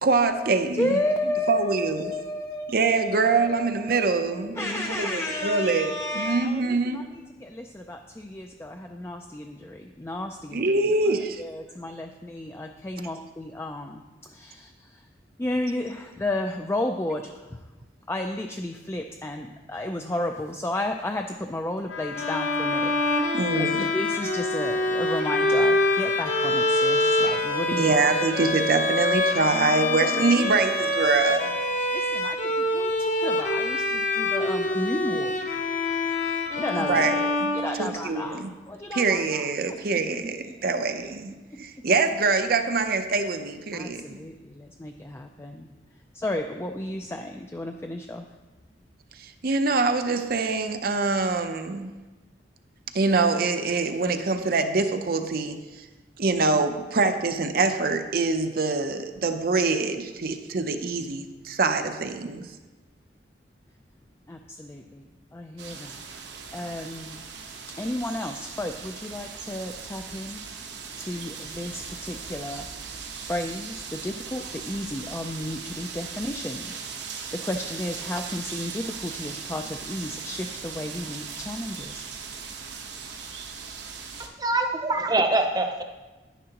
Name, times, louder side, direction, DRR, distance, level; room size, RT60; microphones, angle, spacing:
voice 1, 0.0-1.0 1.5-2.1 2.7-7.0 10.5-11.4 23.3-23.9 27.8-31.5 36.9-38.5 38.9-44.2 49.2-51.9 52.9-55.6 56.2-62.5, right 3 dB, 55° right, 7 dB, 0.6 m, -24 dB
voice 2, 0.7-7.1 7.4-10.8 11.0-14.0 14.3-15.0 15.4-17.6 18.1-23.7 23.9-28.0 29.4-30.5 31.9-35.6 36.5-37.2 37.5-39.8 40.2-40.3 43.7-45.7 46.1-48.3 64.3-66.0 66.5-67.2 67.8-70.4 71.0-72.7 73.2-76.8 77.3-82.0, left 1 dB, 15° left, 4 dB, 0.4 m, -33 dB
Wind instrument woodwind instrument, 21.8-31.1, left 6 dB, 90° left, 0.5 m, -37 dB
Bowed string instrument, 22.2-38.2, left 2 dB, 45° left, 1.0 m, -25 dB
sound 1, 65.6-84.3, right 6 dB, 80° right, 1.1 m, -39 dB
voice 3, 84.4-85.8, right 2 dB, 20° right, 5 dB, 0.7 m, -24 dB
10.0 x 10.0 x 2.9 m, 1.2 s
head